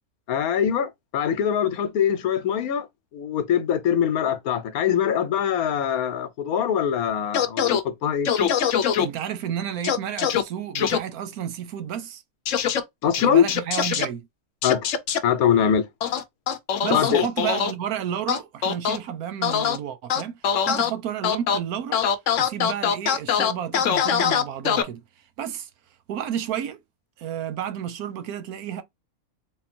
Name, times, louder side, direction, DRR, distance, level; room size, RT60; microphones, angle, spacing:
voice 1, 0.3-2.9 3.1-8.3 13.0-13.5 14.6-14.9 15.2-15.9 16.9-17.2, left 8 dB, 85° left, 1.2 m, -23 dB
sound 1, 7.3-7.8 8.3-9.1 9.8-10.4 10.8-11.0 12.5-12.8 13.1-14.1 14.6-15.2 16.0-17.7 18.3-19.0 19.4-19.8 20.1-20.9 21.2-21.6 21.9-24.8, left 8 dB, 65° left, 1.0 m, -22 dB
voice 2, 9.0-12.2 13.2-14.3 16.8-20.4 20.7-22.0 22.4-25.0 25.4-25.7 26.1-26.8 27.2-28.8, right 9 dB, 85° right, 1.2 m, -31 dB
3.8 x 2.2 x 4.2 m
omnidirectional pair, 1.5 m